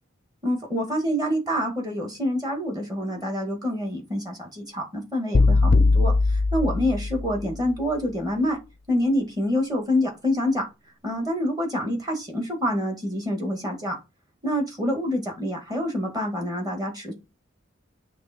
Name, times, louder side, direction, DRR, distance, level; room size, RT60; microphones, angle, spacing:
voice 1, 0.4-8.6 8.9-10.6 11.0-13.9 14.4-17.1, left 1 dB, 20° right, 2 dB, 1.7 m, -26 dB
sound 1, 5.3-7.6, left 3 dB, 45° left, 0.4 m, -20 dB
8.5 x 3.4 x 4.3 m, 0.25 s
head